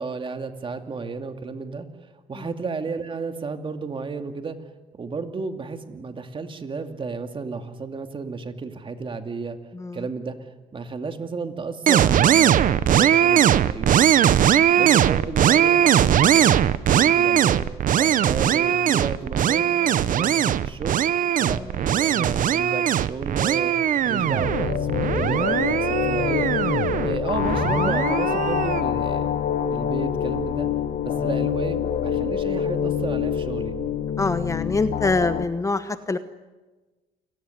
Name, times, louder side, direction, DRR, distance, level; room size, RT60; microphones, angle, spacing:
voice 1, 0.0-1.9 2.3-4.6 4.9-9.6 9.9-10.4 10.7-14.3 14.7-17.7 18.0-21.0 21.4-23.7 24.0-26.5 27.0-29.4 29.7-30.7 31.0-33.8, right 4 dB, 30° right, 7 dB, 2.5 m, -32 dB
sound 1, 11.9-28.8, right 10 dB, 50° right, 0.9 m, -20 dB
sound 2, 23.9-35.4, left 9 dB, 60° left, 1.5 m, -26 dB
voice 2, 34.2-36.2, left 3 dB, 20° left, 11 dB, 1.1 m, -24 dB
28.5 x 18.5 x 9.8 m, 1.2 s
cardioid pair, 110°, 17 cm